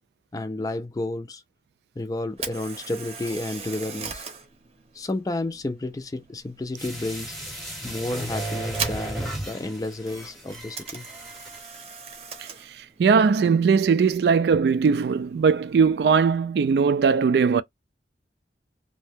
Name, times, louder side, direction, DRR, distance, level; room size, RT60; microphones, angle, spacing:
voice 1, 0.3-1.4 2.0-4.2 4.9-7.4 7.8-11.1, left 2 dB, 20° left, 0.3 m, -31 dB
Camera, 2.3-16.4, right 5 dB, 35° right, 0.7 m, -40 dB
sound 1, 6.8-11.8 12.1-12.2, right 1 dB, ahead, 0.8 m, -34 dB
voice 2, 13.0-17.6, right 5 dB, 65° right, 0.3 m, -19 dB
2.7 x 2.1 x 3.4 m
head